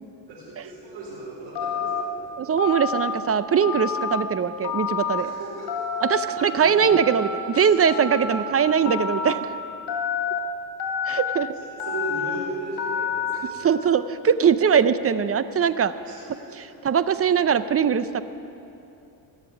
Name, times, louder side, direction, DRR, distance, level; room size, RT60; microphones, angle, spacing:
voice 1, 0.3-2.3 5.1-7.1 7.6-8.4 11.5-13.6 14.4-14.5 16.0-16.6, right 2 dB, 85° right, -7 dB, 4.4 m, -37 dB
Telephone, 1.6-2.0 2.6-3.1 3.6-4.2 4.6-5.2 5.7-6.2 6.8-7.4 7.9-8.4 8.9-9.4 9.9-10.4 10.8-11.4 11.8-12.4 12.8-13.4, left 7 dB, 60° left, 2.8 m, -28 dB
voice 2, 2.4-5.3 6.0-9.6 11.1-11.5 13.6-15.9 16.8-18.2, right 7 dB, 30° right, 13 dB, 0.6 m, -21 dB
17.0 x 7.5 x 9.8 m, 2.8 s
cardioid pair, 90°, 46 cm